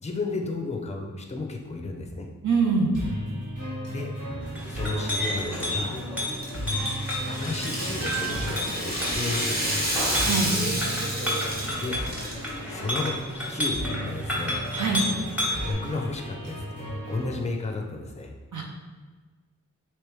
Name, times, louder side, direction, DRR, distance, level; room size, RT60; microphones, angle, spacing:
voice 1, 0.0-2.3 3.9-4.1 4.7-6.0 7.3-10.0 11.7-12.0 12.7-14.6 15.6-18.3, left 3 dB, 20° left, 3 dB, 0.5 m, -33 dB
voice 2, 2.4-2.9 10.2-10.5 14.7-15.0 18.5-18.6, right 4 dB, 65° right, -1 dB, 0.7 m, -23 dB
sound 1, 2.9-17.3, equal, 45° right, 1.5 m, -36 dB
Chink clink, 4.4-15.7, equal, 5° right, 1.1 m, -31 dB
Rattle (instrument), 6.2-12.5, equal, 30° right, 1.0 m, -30 dB
3.3 x 3.0 x 3.1 m, 1.4 s
wide cardioid pair, 45°, 33 cm